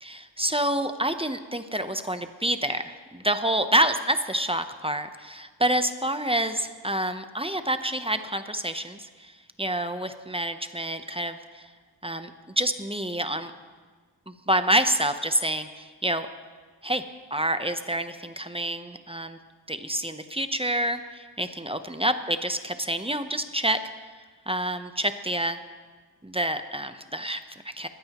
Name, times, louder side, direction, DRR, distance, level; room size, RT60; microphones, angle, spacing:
voice 1, 0.0-9.3 9.6-11.7 12.0-12.3 12.6-13.5 14.3-16.3 16.8-17.0 17.3-19.4 19.7-23.8 24.5-25.6 26.2-27.9, right 1 dB, 15° right, 9 dB, 0.7 m, -27 dB
21.0 x 15.0 x 3.0 m, 1.5 s
wide cardioid pair, 65°, 44 cm